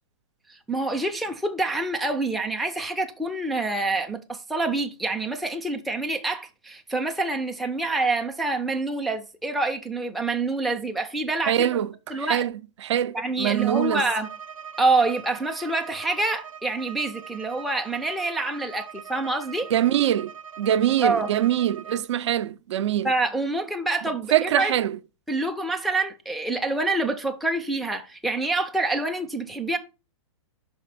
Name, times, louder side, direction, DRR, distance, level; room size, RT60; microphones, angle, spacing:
voice 1, 0.5-11.7 12.1-12.4 13.1-14.3 14.8-19.7 21.0-21.3 23.0-24.7 25.3-29.8, right 2 dB, ahead, 0.4 m, -26 dB
voice 2, 11.5-12.5 12.8-14.0 19.7-20.3 20.6-23.1 24.3-25.0, right 11 dB, 60° right, 0.5 m, -23 dB
Bowed string instrument, 13.6-22.1, right 8 dB, 90° right, 0.8 m, -41 dB
5.9 x 4.3 x 5.7 m
hypercardioid pair, 150°, 17 cm